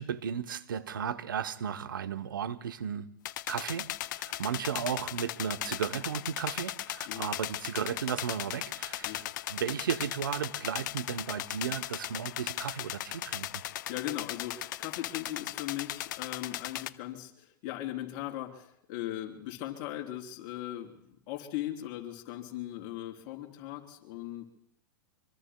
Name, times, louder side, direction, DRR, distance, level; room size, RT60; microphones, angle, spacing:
voice 1, 0.0-3.1 3.5-3.9 4.2-13.5, right 8 dB, 85° right, 11 dB, 0.8 m, -35 dB
sound 1, 3.2-16.9, left 14 dB, 65° left, 0.6 m, -37 dB
voice 2, 13.7-21.0 21.3-24.5, left 13 dB, 50° left, 2 dB, 3.5 m, -39 dB
25.0 x 24.5 x 2.2 m, 0.73 s
hypercardioid pair, 115°, 11 cm